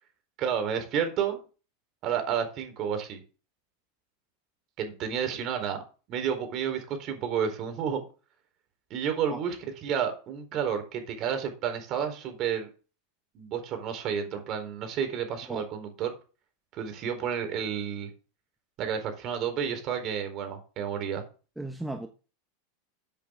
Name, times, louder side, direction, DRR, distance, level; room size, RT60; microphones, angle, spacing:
voice 1, 0.4-1.4 2.0-3.2 4.8-5.8 6.1-8.0 8.9-12.7 13.3-16.1 16.7-18.1 18.8-21.2, right 8 dB, 45° right, 4.2 m, -31 dB
voice 2, 21.6-22.1, right 1 dB, 5° right, 1.1 m, -35 dB
13.0 x 8.5 x 3.8 m
hypercardioid pair, 115°, 0 cm